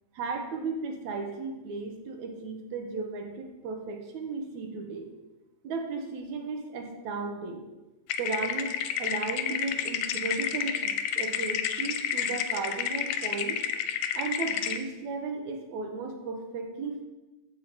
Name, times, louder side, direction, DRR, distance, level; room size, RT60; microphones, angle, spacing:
voice 1, 0.1-5.1 5.6-7.6 8.2-8.7 9.0-13.6 14.1-17.0, right 4 dB, 75° right, 3 dB, 2.4 m, -35 dB
sound 1, 8.1-14.8, left 8 dB, 80° left, 1.9 m, -30 dB
14.5 x 5.6 x 4.5 m, 1.1 s
omnidirectional pair, 3.4 m